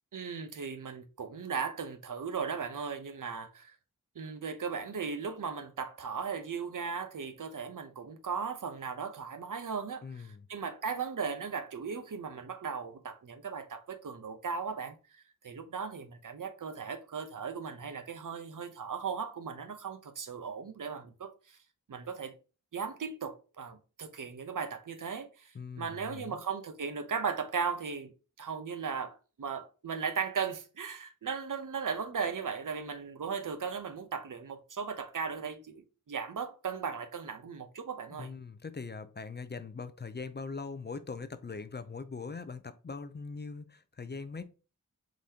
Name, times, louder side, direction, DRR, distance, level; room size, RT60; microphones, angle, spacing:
voice 1, 0.1-3.8 4.2-21.6 21.9-22.3 22.7-28.1 28.4-38.3, right 6 dB, 70° right, 0.7 m, -37 dB
voice 2, 10.0-10.5 25.5-26.4 38.1-44.4, left 4 dB, 35° left, 0.4 m, -41 dB
4.9 x 3.8 x 2.8 m
wide cardioid pair, 80°, 32 cm